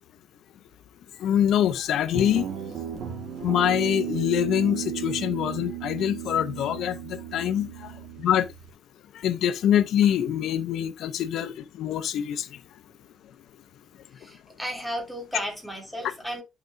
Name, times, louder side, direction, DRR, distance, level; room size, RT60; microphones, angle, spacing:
voice 1, 1.2-2.5 3.4-7.9 8.2-8.5 9.1-12.5, left 10 dB, 80° left, 0.6 m, -24 dB
Guitar, 2.1-8.7, right 10 dB, 80° right, 2.3 m, -35 dB
voice 2, 14.1-16.4, equal, ahead, 2.9 m, -34 dB
10.5 x 5.9 x 2.6 m
cardioid pair, 140°, 0 cm